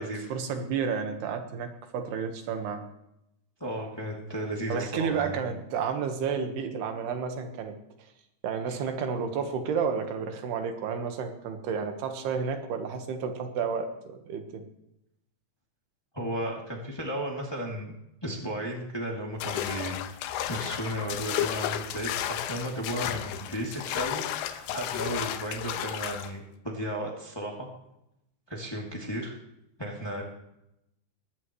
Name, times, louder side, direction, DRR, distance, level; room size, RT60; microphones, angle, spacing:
voice 1, 0.0-2.9 4.7-7.8 8.4-14.7, right 6 dB, 65° right, 6 dB, 3.2 m, -31 dB
voice 2, 3.6-5.5 8.7-8.8 16.1-17.9 18.2-20.0 20.5-27.7 28.5-29.4 29.8-30.2, right 1 dB, 15° left, -2 dB, 1.0 m, -34 dB
sound 1, 19.4-26.3, left 12 dB, 80° left, 3.0 m, -33 dB
21.0 x 16.5 x 3.2 m, 0.84 s
omnidirectional pair, 5.3 m